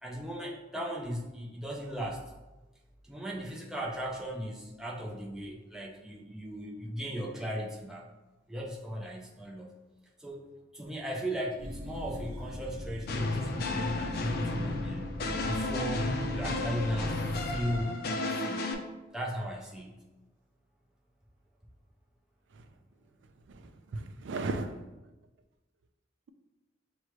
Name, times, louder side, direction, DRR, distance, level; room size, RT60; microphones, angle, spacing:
voice 1, 0.0-2.3 3.0-8.1 8.5-9.8 10.2-10.4 10.7-15.2 15.5-16.1 16.3-17.2 17.5-18.8 19.1-20.0, equal, 5° right, 0.5 m, -37 dB
sound 1, 11.6-17.8, left 1 dB, 55° right, 0.8 m, -40 dB
sound 2, 13.1-18.7, left 2 dB, 55° left, 0.4 m, -33 dB
voice 2, 23.5-24.8, right 3 dB, 75° right, 0.4 m, -36 dB
6.1 x 2.2 x 3.0 m
head